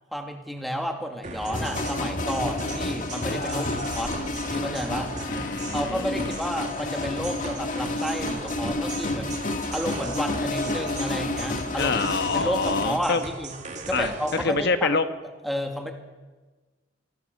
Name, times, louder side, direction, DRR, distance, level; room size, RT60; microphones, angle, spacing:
voice 1, 0.1-4.2 4.5-5.1 5.7-9.4 9.7-12.0 12.3-13.5 13.9-14.9 15.4-15.9, equal, ahead, 3 dB, 2.2 m, -31 dB
sound 1, 1.2-14.5, right 3 dB, 40° right, 2.7 m, -38 dB
sound 2, 1.4-13.0, left 2 dB, 45° left, 1.8 m, -30 dB
voice 2, 5.3-6.4 11.8-13.2 13.9-15.1, left 4 dB, 60° left, 9 dB, 1.4 m, -26 dB
26.5 x 19.5 x 6.7 m, 1.3 s
head